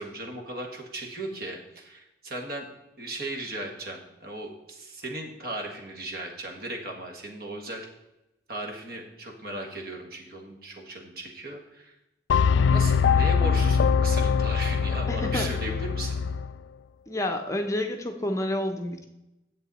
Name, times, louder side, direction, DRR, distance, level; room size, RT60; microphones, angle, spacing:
voice 1, 0.0-2.7 3.0-7.9 8.5-11.9 12.4-16.2, right 2 dB, 55° right, 2 dB, 1.7 m, -37 dB
sound 1, 12.3-16.5, left 6 dB, 85° left, 0.3 m, -23 dB
voice 2, 15.1-15.5 17.1-19.1, left 1 dB, 15° left, 4 dB, 0.7 m, -29 dB
10.5 x 7.7 x 4.1 m, 0.93 s
head